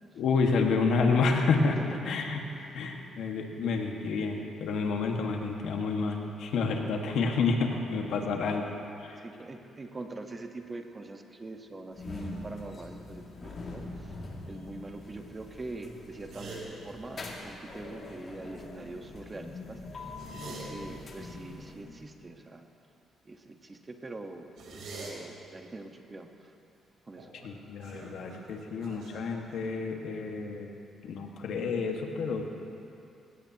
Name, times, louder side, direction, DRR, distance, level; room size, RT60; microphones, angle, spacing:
voice 1, 0.1-1.8 2.0-2.4 2.7-8.6 9.0-9.2 27.4-30.7 31.0-32.4, left 4 dB, 75° left, 2 dB, 1.7 m, -29 dB
voice 2, 1.7-2.1 2.6-2.8 8.0-8.8 9.2-22.6 23.2-24.5 25.1-26.5 27.1-27.3, right 2 dB, 25° right, 4 dB, 1.3 m, -44 dB
sound 1, 11.9-22.1, left 2 dB, 50° left, 2.4 m, -43 dB
sound 2, 16.3-16.6 20.0-20.6 24.6-25.1 27.2-27.5 27.8-29.9, right 3 dB, 70° right, 3.7 m, -44 dB
20.5 x 17.0 x 3.0 m, 2.7 s
cardioid pair, 90°, 0 cm